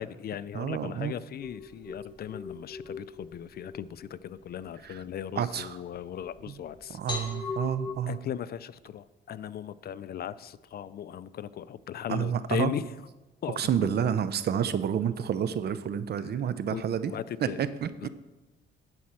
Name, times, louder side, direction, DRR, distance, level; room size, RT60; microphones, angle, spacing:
voice 1, 0.0-7.0 8.1-12.8 13.4-13.6 16.7-17.6 18.0-18.1, left 10 dB, 50° left, 16 dB, 0.4 m, -37 dB
voice 2, 0.5-1.1 4.8-5.0 5.4-5.8 6.5-6.6 6.9-8.2 12.1-12.7 13.6-17.2 17.4-18.1, right 8 dB, 55° right, 13 dB, 0.6 m, -29 dB
sound 1, 1.4-7.9, left 4 dB, 25° left, 2.5 m, -41 dB
10.5 x 4.3 x 7.5 m, 1.1 s
cardioid pair, 90°, 20 cm